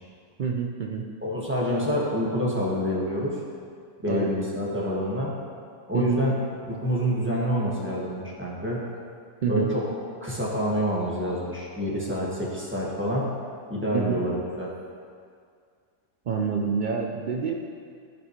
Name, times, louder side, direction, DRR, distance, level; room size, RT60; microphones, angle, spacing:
voice 1, 0.4-1.1 4.1-4.3 5.9-6.2 9.4-9.7 13.9-14.2 16.3-17.5, right 6 dB, 75° right, 1 dB, 0.4 m, -27 dB
voice 2, 1.2-3.4 4.0-5.4 5.9-6.4 6.8-8.8 9.5-9.8 10.2-13.4 13.7-14.7, equal, 10° right, -5 dB, 1.5 m, -27 dB
14.5 x 6.1 x 3.1 m, 2.2 s
omnidirectional pair, 1.6 m